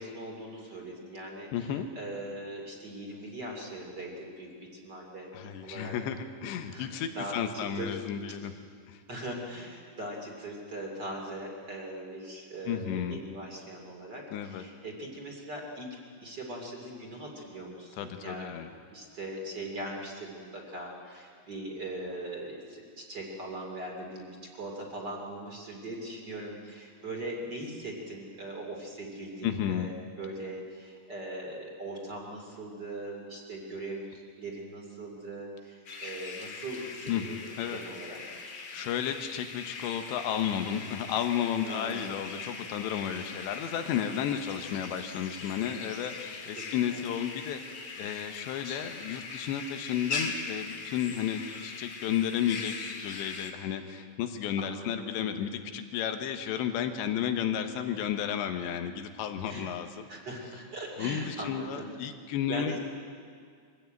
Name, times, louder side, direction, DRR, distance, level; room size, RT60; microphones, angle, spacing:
voice 1, 0.0-5.3 5.6-5.9 6.7-8.0 8.3-8.4 9.1-15.9 16.2-18.5 18.9-37.4 37.7-38.2 41.6-42.2 46.5-47.0 54.6-55.2 57.3-57.6 59.5-59.7 60.1-61.9 62.5-62.8, right 1 dB, 30° right, 0 dB, 2.6 m, -40 dB
voice 2, 1.5-1.9 5.3-8.5 8.9-9.0 12.7-13.2 14.3-14.6 18.0-18.7 29.4-29.9 37.1-37.3 37.6-37.8 38.4-60.1 61.0-62.7, left 9 dB, 75° left, 7 dB, 3.2 m, -33 dB
sound 1, 35.9-53.5, left 4 dB, 50° left, 2.2 m, -41 dB
23.5 x 16.0 x 9.0 m, 2.1 s
omnidirectional pair, 5.3 m